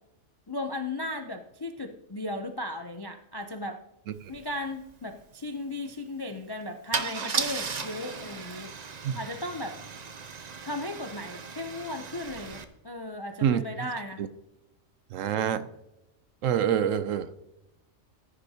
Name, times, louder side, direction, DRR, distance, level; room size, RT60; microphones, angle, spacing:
voice 1, 0.5-3.8 4.3-8.7 9.2-9.8 10.6-14.2, left 1 dB, 40° left, 6 dB, 0.3 m, -36 dB
Car / Engine starting / Idling, 4.3-4.4 4.7-4.9 6.9-12.6, right 5 dB, 40° right, 0.6 m, -36 dB
voice 2, 15.1-15.7 16.4-17.3, right 9 dB, 70° right, 13 dB, 1.0 m, -25 dB
15.0 x 9.8 x 2.8 m, 0.90 s
omnidirectional pair, 1.4 m